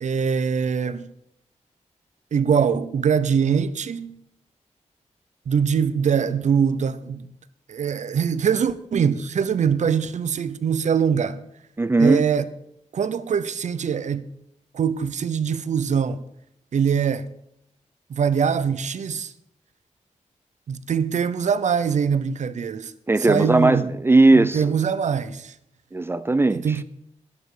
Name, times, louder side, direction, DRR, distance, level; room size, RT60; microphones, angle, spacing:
voice 1, 0.0-1.1 2.3-4.2 5.5-7.3 7.7-11.4 12.0-12.5 12.9-14.3 14.7-16.2 16.7-17.3 18.1-19.3 20.7-22.9 23.3-23.9 24.3-25.5 26.5-26.8, right 7 dB, 70° right, 0.7 m, -23 dB
voice 2, 11.8-12.3 23.1-24.7 25.9-26.7, right 2 dB, 20° right, 0.4 m, -18 dB
11.5 x 11.0 x 5.0 m
wide cardioid pair, 160°, 13 cm